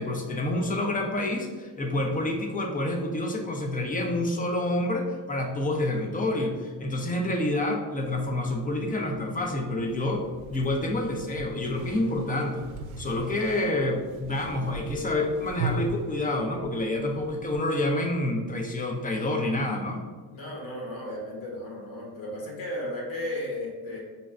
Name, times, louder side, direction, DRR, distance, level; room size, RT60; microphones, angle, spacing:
voice 1, 0.0-10.2 10.5-12.7 13.0-20.0, left 1 dB, 20° left, 2 dB, 0.3 m, -28 dB
sound 1, 8.0-17.6, right 3 dB, 75° right, 0.5 m, -39 dB
voice 2, 20.3-24.0, left 1 dB, 80° left, -2 dB, 1.4 m, -34 dB
5.1 x 2.1 x 2.4 m, 1.4 s
cardioid pair, 100°, 48 cm